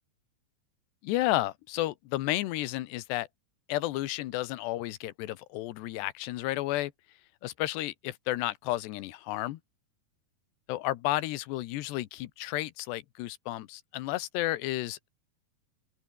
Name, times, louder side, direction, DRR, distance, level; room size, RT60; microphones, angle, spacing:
voice 1, 1.0-3.3 3.7-6.9 7.4-9.6 10.7-15.1, left 16 dB, 90° left, 3.2 m, -32 dB
open air
omnidirectional pair, 4.7 m